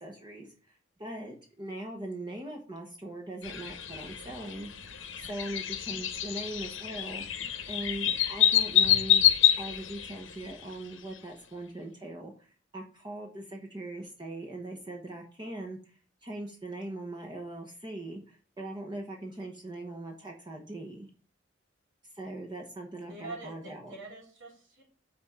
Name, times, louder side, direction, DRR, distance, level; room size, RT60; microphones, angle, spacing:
voice 1, 0.0-4.7 5.2-7.2 7.7-9.3 9.6-21.1 22.1-23.9, right 1 dB, 25° right, 0 dB, 1.1 m, -41 dB
sound 1, 3.4-10.7, left 10 dB, 70° left, 1.0 m, -27 dB
voice 2, 23.1-24.8, right 2 dB, 70° right, -1 dB, 3.8 m, -44 dB
6.1 x 4.3 x 6.1 m, 0.39 s
head